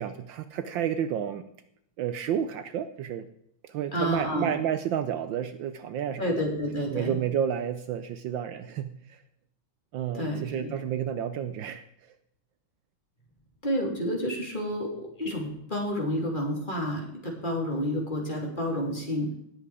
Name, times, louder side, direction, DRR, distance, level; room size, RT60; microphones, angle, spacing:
voice 1, 0.0-1.4 2.0-3.3 3.6-6.2 6.9-9.2 9.9-11.8, right 9 dB, 70° right, 11 dB, 1.3 m, -30 dB
voice 2, 3.9-4.5 6.2-7.1 10.1-10.7 13.6-19.3, equal, 20° left, 0 dB, 3.2 m, -30 dB
18.0 x 8.0 x 4.9 m, 0.77 s
omnidirectional pair, 2.3 m